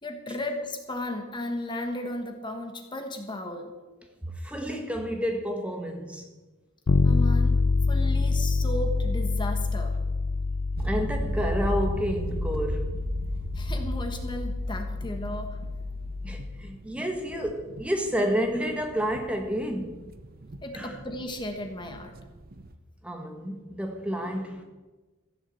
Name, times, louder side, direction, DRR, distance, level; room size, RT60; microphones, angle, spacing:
voice 1, 0.0-3.7 7.0-7.6 7.9-9.9 13.5-15.6 20.6-22.1, left 1 dB, 20° left, 1.4 m, -35 dB
voice 2, 4.2-6.3 10.8-13.0 16.2-20.1 20.7-21.0 23.0-24.6, equal, 5° right, 1.6 m, -30 dB
Bass guitar, 6.9-16.6, left 3 dB, 70° left, 0.6 m, -27 dB
sound 1, 10.8-22.7, right 2 dB, 45° right, 0.7 m, -37 dB
15.0 x 7.7 x 7.8 m
head